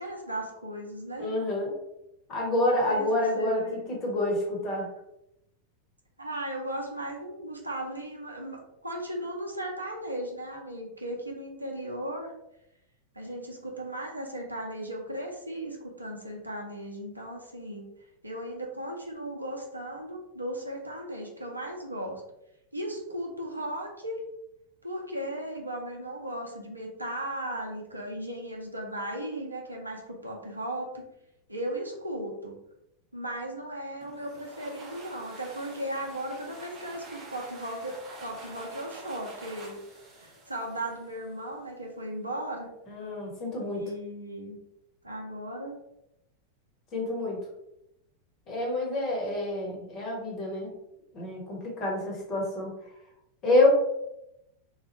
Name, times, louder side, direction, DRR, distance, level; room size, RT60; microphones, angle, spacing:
voice 1, 0.0-1.3 2.9-3.1 3.3-3.8 6.2-12.3 13.1-17.9 18.2-22.2 22.7-24.2 24.8-31.0 31.5-32.6 33.1-39.8 40.2-42.7 43.7-44.6 45.0-45.8, right 1 dB, 85° right, 0 dB, 0.6 m, -36 dB
voice 2, 1.2-1.7 2.3-4.9 42.9-43.9 46.9-47.4 48.5-50.7 51.1-52.7 53.4-53.7, left 2 dB, 35° left, -2 dB, 1.1 m, -27 dB
sound 1, 34.0-41.5, right 2 dB, 25° right, 0.7 m, -47 dB
3.1 x 2.1 x 2.9 m, 0.84 s
figure-of-eight pair, 90°, 0 cm